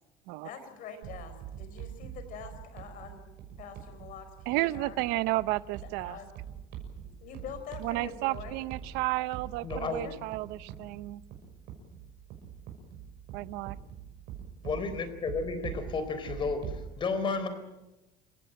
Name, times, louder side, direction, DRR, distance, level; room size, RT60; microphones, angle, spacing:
voice 1, 0.4-3.3 3.6-5.0 6.0-6.3 7.2-8.6 9.9-10.1, left 7 dB, 55° left, 9 dB, 4.9 m, -44 dB
sound 1, 1.0-16.9, right 9 dB, 65° right, 6.4 m, -44 dB
voice 2, 4.5-6.2 7.8-11.2 13.3-13.8, right 19 dB, 85° right, 17 dB, 0.8 m, -32 dB
voice 3, 9.6-10.0 14.6-17.5, left 4 dB, 30° left, 11 dB, 3.9 m, -32 dB
28.5 x 16.0 x 9.1 m, 1.0 s
cardioid pair, 145°, 16 cm